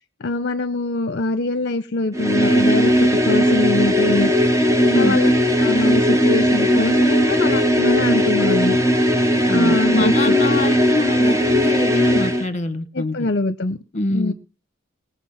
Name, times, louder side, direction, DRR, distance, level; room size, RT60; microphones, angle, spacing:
voice 1, 0.2-4.3 4.9-5.3 5.6-8.8 9.5-10.3 12.9-13.8 14.1-14.3, left 2 dB, 50° left, 12 dB, 0.8 m, -23 dB
sound 1, 2.1-12.5, equal, 15° right, 1.1 m, -17 dB
voice 2, 4.8-5.2 9.5-13.3 13.9-14.3, left 2 dB, 35° left, 13 dB, 1.4 m, -24 dB
20.5 x 7.2 x 5.7 m, 0.33 s
head